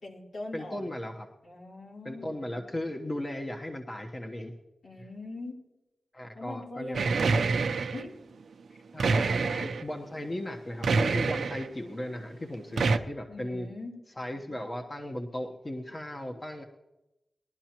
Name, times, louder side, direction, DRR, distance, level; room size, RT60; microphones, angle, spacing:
voice 1, 0.0-1.0 1.4-2.3 4.8-5.6 6.3-8.1 8.7-8.8 9.1-9.6 13.3-13.9, left 2 dB, 80° left, -2 dB, 3.4 m, -42 dB
voice 2, 0.5-1.3 2.0-4.5 5.0-5.1 6.1-7.4 8.9-13.7 14.2-16.6, left 1 dB, 35° left, 3 dB, 1.1 m, -37 dB
sound 1, 6.9-8.0 9.0-9.8 10.8-11.7 12.8-13.0, right 4 dB, 85° right, 0.6 m, -26 dB
21.0 x 11.5 x 3.0 m, 0.96 s
cardioid pair, 60°, 0 cm